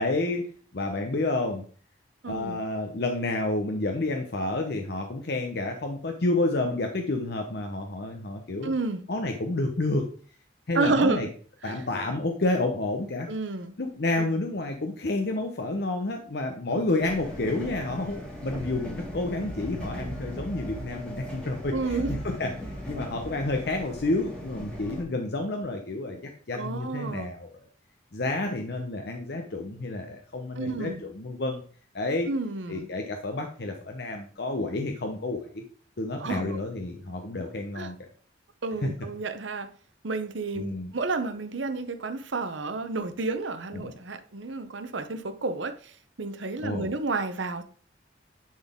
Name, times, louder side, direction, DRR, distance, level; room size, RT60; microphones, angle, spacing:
voice 1, 0.0-1.6 2.3-8.7 9.1-10.1 10.7-11.3 11.6-13.3 13.8-27.5 28.1-31.6 31.9-32.3 32.7-35.6 36.0-38.0 40.5-40.9 43.7-43.9 46.6-46.9, left 2 dB, 60° left, 0.8 m, -30 dB
voice 2, 2.2-2.6 8.6-9.0 10.7-11.3 11.6-11.8 13.3-13.7 14.2-14.3 16.7-16.8 21.7-22.2 26.5-27.3 30.6-31.0 32.3-32.9 36.2-36.6 37.7-37.9 38.6-39.7 40.0-47.6, right 3 dB, 80° right, 0.8 m, -30 dB
sound 1, 17.0-25.0, equal, 5° left, 1.8 m, -38 dB
10.5 x 4.0 x 3.6 m
head